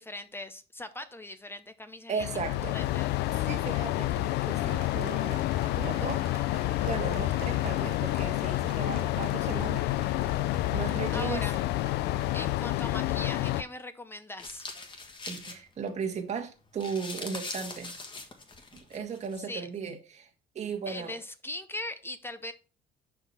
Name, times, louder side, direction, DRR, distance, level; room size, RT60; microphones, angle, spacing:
voice 1, 0.0-2.3 2.7-3.1 11.1-11.6 12.3-14.7 19.5-19.7 20.9-22.5, left 1 dB, 15° left, 0.7 m, -40 dB
voice 2, 2.1-2.7 3.4-5.4 5.8-6.2 6.9-9.9 10.7-11.5 15.3-18.0 18.7-20.3 20.5-21.2, right 6 dB, 40° right, 1.5 m, -36 dB
sound 1, 2.2-13.6, left 16 dB, 80° left, 0.4 m, -29 dB
Applause, 4.6-13.6, right 8 dB, 65° right, 1.1 m, -51 dB
sound 2, 14.4-16.1 16.4-16.5 16.7-19.4, left 3 dB, 30° left, 1.5 m, -41 dB
5.8 x 4.6 x 5.5 m
cardioid pair, 110°, 17 cm